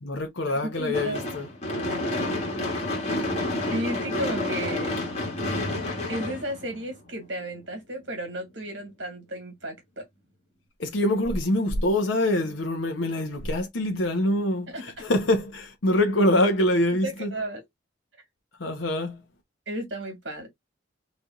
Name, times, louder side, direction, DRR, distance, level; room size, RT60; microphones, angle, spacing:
voice 1, 0.0-1.5 10.8-17.3 18.6-19.2, left 1 dB, 80° left, 0.8 m, -25 dB
voice 2, 0.8-1.2 3.7-4.9 6.1-10.0 14.7-15.0 17.0-17.6 19.7-20.5, right 1 dB, 70° right, 1.9 m, -33 dB
Gunshot gunfire / Fireworks, 0.9-7.2, left 1 dB, 35° left, 1.8 m, -29 dB
4.0 x 3.4 x 2.3 m
head